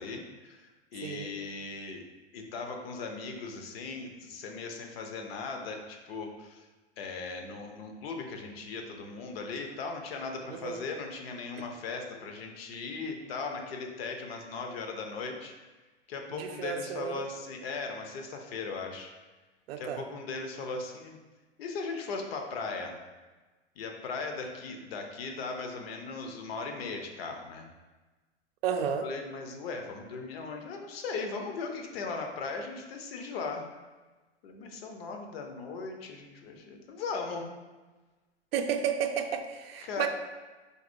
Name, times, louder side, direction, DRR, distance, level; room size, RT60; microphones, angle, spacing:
voice 1, 0.0-2.0 2.3-6.7 7.0-15.5 16.1-19.1 19.8-21.2 21.6-23.0 23.8-27.7 29.0-33.7 34.4-37.5 39.8-40.1, left 4 dB, 65° left, 3 dB, 0.7 m, -38 dB
voice 2, 10.5-10.8 16.3-17.2 19.7-20.0 28.6-29.1 38.5-40.1, right 8 dB, 65° right, 7 dB, 0.4 m, -32 dB
4.0 x 2.9 x 2.6 m, 1.2 s
hypercardioid pair, 100°, 33 cm